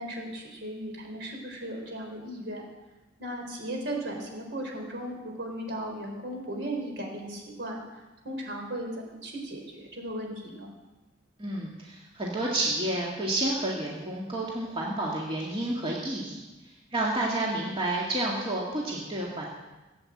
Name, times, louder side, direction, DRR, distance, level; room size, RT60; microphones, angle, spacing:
voice 1, 0.0-2.6 3.2-10.7, right 1 dB, 65° right, 1 dB, 4.1 m, -36 dB
voice 2, 11.4-16.4 16.9-19.5, right 1 dB, 30° right, -3 dB, 2.1 m, -30 dB
16.5 x 8.3 x 8.5 m, 1.1 s
head